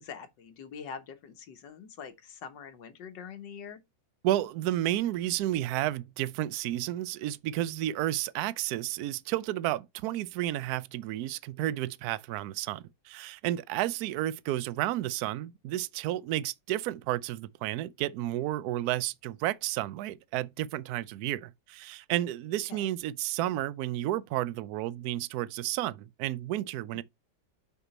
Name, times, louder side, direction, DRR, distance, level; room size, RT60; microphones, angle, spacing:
voice 1, 0.0-3.8 22.7-22.9, left 6 dB, 85° left, 1.8 m, -44 dB
voice 2, 4.2-27.0, right 14 dB, 70° right, 1.0 m, -31 dB
6.0 x 5.6 x 4.2 m
omnidirectional pair, 1.9 m